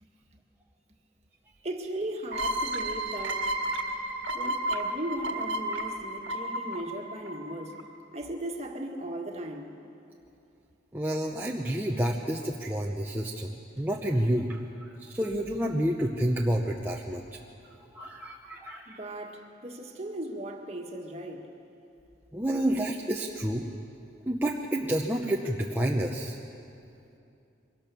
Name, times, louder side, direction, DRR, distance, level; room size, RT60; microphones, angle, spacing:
voice 1, 1.6-3.6 4.3-7.7 8.1-9.7 18.9-21.5, right 1 dB, 35° right, 2 dB, 1.7 m, -37 dB
sound 1, 2.3-7.8, right 1 dB, 90° right, 1.7 m, -32 dB
voice 2, 10.9-13.5 13.8-17.2 17.9-19.0 22.3-23.7 24.3-26.4, right 1 dB, 10° right, -1 dB, 0.8 m, -29 dB
23.0 x 18.0 x 7.0 m, 2.6 s
head